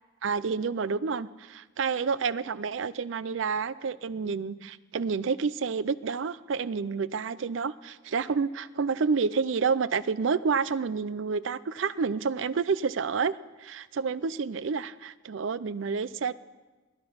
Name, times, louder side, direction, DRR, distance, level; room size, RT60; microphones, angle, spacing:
voice 1, 0.2-13.3 13.6-16.3, right 5 dB, 75° right, 17 dB, 0.5 m, -29 dB
19.0 x 9.7 x 5.6 m, 1.2 s
head